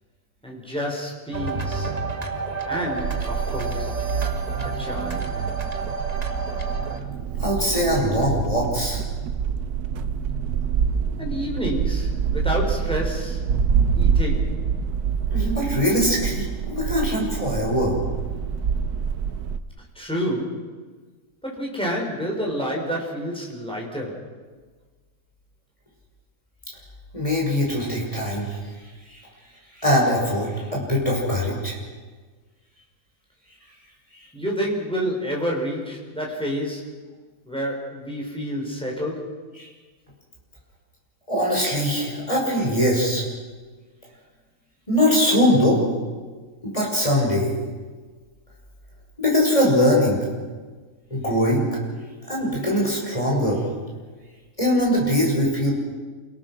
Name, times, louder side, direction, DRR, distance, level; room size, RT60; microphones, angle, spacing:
voice 1, 0.4-2.0 2.7-3.9 4.6-5.3 11.2-13.5 13.9-14.6 19.9-20.7 21.4-24.2 34.3-37.0 37.4-39.5, equal, 5° left, -2 dB, 4.9 m, -29 dB
sound 1, 1.3-7.0, right 3 dB, 25° right, 1.5 m, -30 dB
sound 2, 3.0-19.6, right 6 dB, 75° right, 1.4 m, -26 dB
voice 2, 7.4-9.0 15.3-18.0 27.1-28.6 29.1-29.2 29.8-31.8 39.6-39.7 41.3-43.2 44.9-45.8 46.6-47.5 49.2-50.2 51.1-51.7 52.3-53.6 54.6-55.7, equal, 20° left, -3 dB, 6.2 m, -21 dB
29.5 x 17.5 x 6.3 m, 1.4 s
omnidirectional pair, 1.7 m